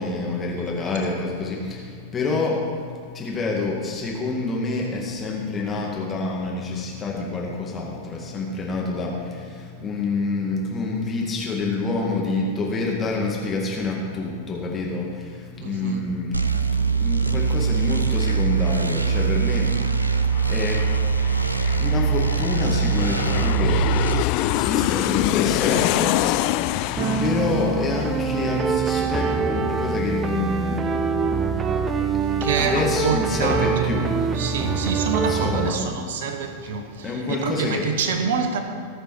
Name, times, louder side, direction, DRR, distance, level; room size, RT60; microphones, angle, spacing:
voice 1, 0.0-34.1 35.3-35.8 37.0-37.8, left 3 dB, 20° left, -2 dB, 2.0 m, -28 dB
voice 2, 15.6-16.0 27.0-27.2 32.4-38.6, right 5 dB, 55° right, 6 dB, 1.2 m, -27 dB
sound 1, 16.3-24.2, right 6 dB, 85° right, 0.5 m, -22 dB
Aircraft, 17.4-17.5 17.8-29.1 29.4-29.5, left 15 dB, 45° left, 0.4 m, -26 dB
sound 2, 27.0-35.7, right 5 dB, 20° right, 0.7 m, -24 dB
19.5 x 6.7 x 4.7 m, 2.3 s
figure-of-eight pair, 90°, 0 cm